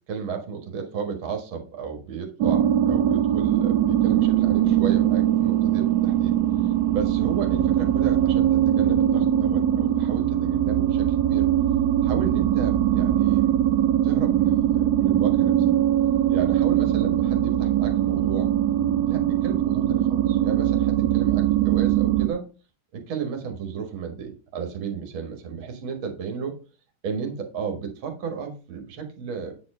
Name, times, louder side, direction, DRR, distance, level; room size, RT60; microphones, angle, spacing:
voice 1, 0.1-6.4 6.9-11.5 12.0-13.7 14.0-15.6 16.3-18.5 19.0-22.5 22.9-26.6 27.0-29.5, right 6 dB, 65° right, 3 dB, 2.4 m, -33 dB
sound 1, 2.4-22.3, right 11 dB, 80° right, 0.8 m, -21 dB
9.1 x 4.5 x 4.9 m, 0.35 s
omnidirectional pair, 2.4 m